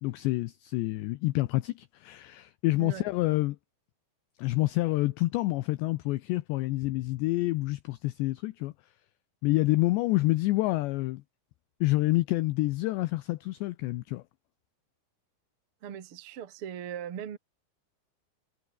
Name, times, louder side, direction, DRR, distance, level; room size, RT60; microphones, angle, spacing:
voice 1, 0.0-3.6 4.4-8.7 9.4-11.2 11.8-14.2, left 19 dB, 80° left, 2.6 m, -28 dB
voice 2, 15.8-17.4, right 9 dB, 65° right, 1.4 m, -39 dB
omnidirectional pair, 5.8 m